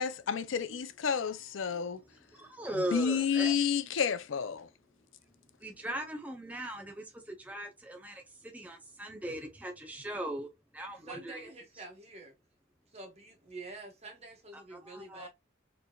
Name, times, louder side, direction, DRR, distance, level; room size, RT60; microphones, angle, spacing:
voice 1, 0.0-2.0 2.9-4.7, left 7 dB, 80° left, 0.5 m, -30 dB
voice 2, 2.3-3.5 5.6-10.5 10.7-11.4 14.5-15.3, right 1 dB, 10° right, 0.7 m, -39 dB
voice 3, 11.1-12.3 12.9-15.3, right 2 dB, 30° right, 1.4 m, -47 dB
4.6 x 3.2 x 2.3 m
head